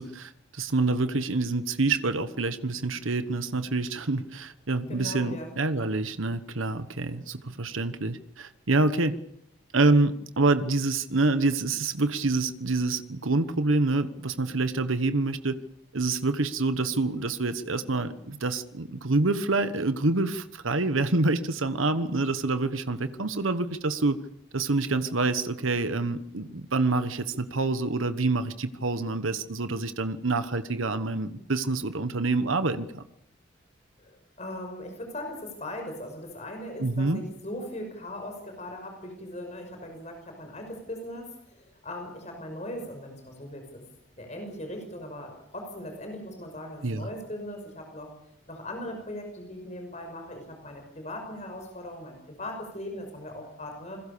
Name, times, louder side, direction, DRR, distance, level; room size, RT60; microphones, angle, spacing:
voice 1, 0.0-9.2 9.7-15.6 15.9-24.2 24.5-33.0 36.8-37.2 46.8-47.1, right 3 dB, 90° right, 11 dB, 1.2 m, -27 dB
voice 2, 4.9-5.5 34.0-34.1 34.4-43.8 44.2-48.1 48.5-54.0, left 1 dB, 35° left, 4 dB, 5.8 m, -39 dB
28.0 x 21.5 x 6.9 m, 0.75 s
head